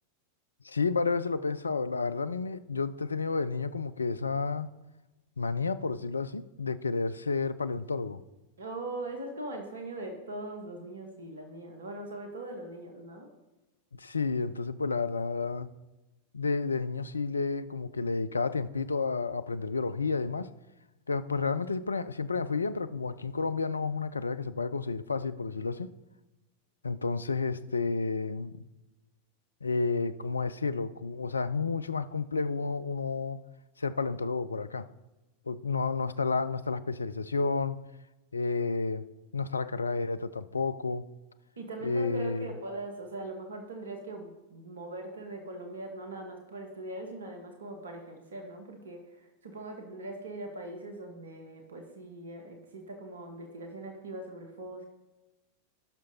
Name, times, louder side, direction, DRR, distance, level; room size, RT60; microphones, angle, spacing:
voice 1, 0.6-4.7 5.4-8.2 14.0-15.7 16.3-20.5 21.1-25.9 26.8-28.5 29.6-33.4 33.8-34.9 35.5-37.8 38.3-39.0 39.3-41.0 41.8-42.5, left 4 dB, 75° left, 0.4 m, -31 dB
voice 2, 8.6-13.3 41.6-54.8, right 2 dB, 70° right, 1.2 m, -41 dB
16.0 x 6.2 x 2.8 m
figure-of-eight pair, 90°, 0 cm